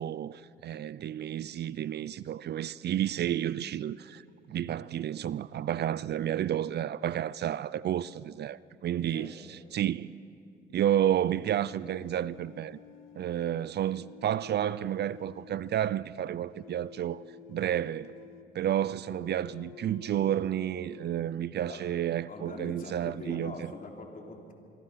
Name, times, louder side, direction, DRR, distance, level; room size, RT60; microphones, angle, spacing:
voice 1, 0.0-10.1 10.7-12.8 13.1-17.2 17.5-18.1 18.5-23.7, right 11 dB, 55° right, 0.5 m, -31 dB
sound 1, 11.0-16.1 16.5-18.5 19.0-21.3 21.6-22.0, left 13 dB, 90° left, 0.7 m, -51 dB
voice 2, 22.3-24.5, left 3 dB, 45° left, 3.4 m, -43 dB
25.0 x 23.0 x 5.8 m
cardioid pair, 90°, 20 cm